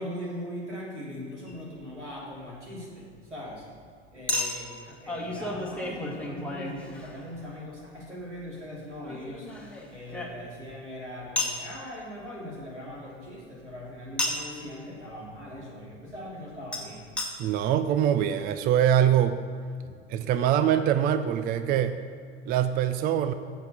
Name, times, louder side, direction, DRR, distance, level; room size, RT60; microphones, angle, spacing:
voice 1, 0.0-3.7 4.1-9.5 9.9-17.1, equal, 85° right, -4 dB, 2.9 m, -40 dB
Chink clink, 1.5-1.6 4.3-7.5 9.0-10.7 11.4-11.6 14.2-14.6 16.7-16.8 17.2-17.3 17.9-18.0 18.2-18.3, left 2 dB, 5° left, 1.5 m, -33 dB
voice 2, 17.4-19.4 20.1-22.0 22.5-23.3, right 10 dB, 25° right, 11 dB, 0.4 m, -23 dB
8.0 x 6.8 x 7.1 m, 2.1 s
figure-of-eight pair, 80°, 34 cm